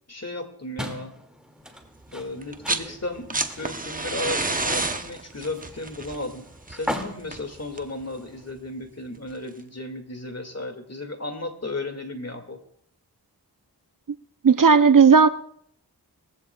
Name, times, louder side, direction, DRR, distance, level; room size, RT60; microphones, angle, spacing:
voice 1, 0.1-1.1 2.1-12.6, left 2 dB, 40° left, 6 dB, 2.2 m, -35 dB
sound 1, 0.8-8.5, equal, ahead, 2.3 m, -39 dB
sound 2, 2.4-2.9 3.1-8.0 9.3-9.4, right 2 dB, 20° right, 0.9 m, -29 dB
voice 2, 14.4-15.3, right 5 dB, 55° right, 12 dB, 0.7 m, -14 dB
21.0 x 15.5 x 2.4 m, 0.67 s
cardioid pair, 40°, 39 cm